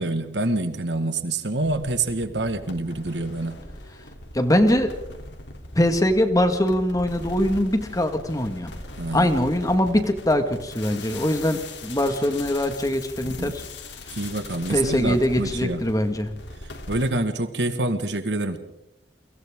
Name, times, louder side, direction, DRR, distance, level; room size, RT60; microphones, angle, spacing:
voice 1, 0.0-3.6 9.0-9.3 13.2-13.6 14.2-15.8 16.9-18.6, right 2 dB, 75° right, 9 dB, 1.8 m, -26 dB
sound 1, 1.6-17.1, left 2 dB, 80° left, 3.4 m, -40 dB
voice 2, 4.3-4.9 5.8-8.7 9.1-13.6 14.7-16.3, left 1 dB, 20° left, 7 dB, 1.8 m, -22 dB
29.5 x 24.5 x 3.8 m, 0.83 s
head